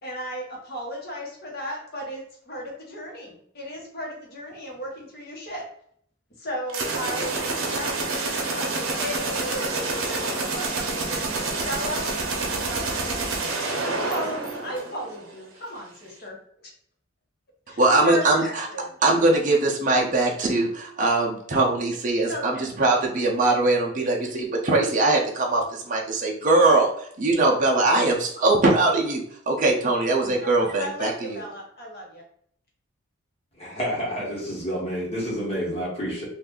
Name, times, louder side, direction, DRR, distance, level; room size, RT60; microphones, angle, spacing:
voice 1, 0.0-5.6 6.4-7.9 8.4-11.3 11.6-12.1 12.5-13.2 13.8-16.3 17.7-18.8 22.3-22.7 30.4-32.2, equal, 50° left, -2 dB, 1.0 m, -35 dB
sound 1, 6.7-15.3, right 3 dB, 80° right, 0.7 m, -28 dB
voice 2, 17.8-18.7 19.0-31.4, right 2 dB, 40° right, -1 dB, 0.5 m, -21 dB
voice 3, 33.6-36.3, equal, 30° left, -5 dB, 1.2 m, -29 dB
2.6 x 2.5 x 3.6 m, 0.65 s
head